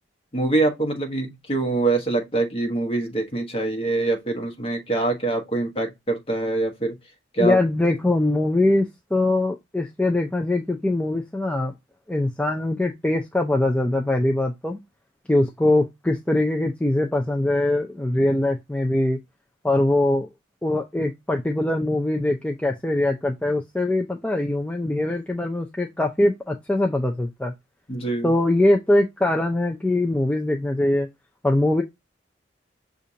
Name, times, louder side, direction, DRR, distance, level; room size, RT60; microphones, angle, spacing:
voice 1, 0.3-7.0 7.3-7.6 15.3-15.4 27.9-28.3, right 2 dB, 30° left, 1.2 m, -24 dB
voice 2, 7.4-11.7 12.1-14.8 15.3-19.2 19.6-20.3 20.6-27.5 28.2-31.1 31.4-31.8, left 1 dB, 5° left, 0.5 m, -22 dB
6.6 x 2.5 x 2.7 m
head